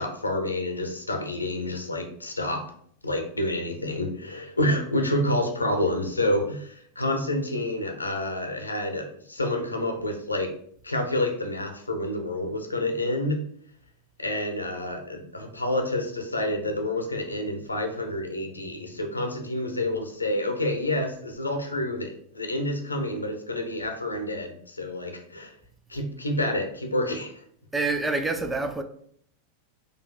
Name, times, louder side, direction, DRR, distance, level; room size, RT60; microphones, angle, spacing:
voice 1, 0.0-2.7 3.0-10.5 10.8-13.4 14.2-25.5 25.9-27.3, left 1 dB, 80° left, 0.5 m, -28 dB
voice 2, 27.7-28.8, right 3 dB, 10° right, 0.3 m, -26 dB
3.9 x 2.6 x 2.3 m
figure-of-eight pair, 90°, 0 cm